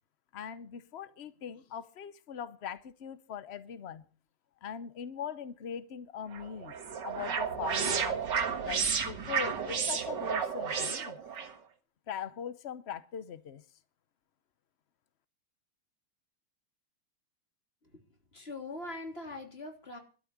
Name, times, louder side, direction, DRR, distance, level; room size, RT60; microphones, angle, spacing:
voice 1, 0.3-4.0 4.6-6.8 7.0-8.2 8.6-11.2 12.1-13.6, left 8 dB, 80° left, 0.5 m, -41 dB
sound 1, 6.3-11.5, right 6 dB, 55° right, 2.1 m, -32 dB
voice 2, 18.3-20.0, left 2 dB, 25° left, 3.3 m, -41 dB
12.5 x 8.7 x 9.5 m
omnidirectional pair, 2.4 m